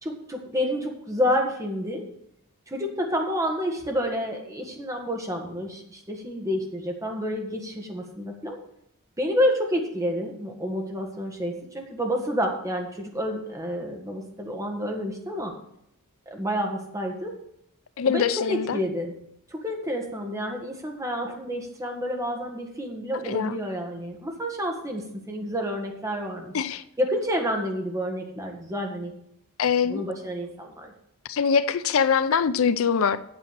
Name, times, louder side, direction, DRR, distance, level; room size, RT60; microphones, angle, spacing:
voice 1, 0.0-2.1 2.7-8.6 9.2-15.5 16.2-17.4 18.0-19.1 19.5-26.5 27.0-29.1 29.8-30.9, equal, 15° right, 2 dB, 1.7 m, -29 dB
voice 2, 18.0-18.8 23.2-23.6 26.5-26.8 29.6-30.0 31.3-33.2, left 6 dB, 65° left, 15 dB, 0.5 m, -23 dB
8.7 x 7.2 x 7.4 m, 0.78 s
head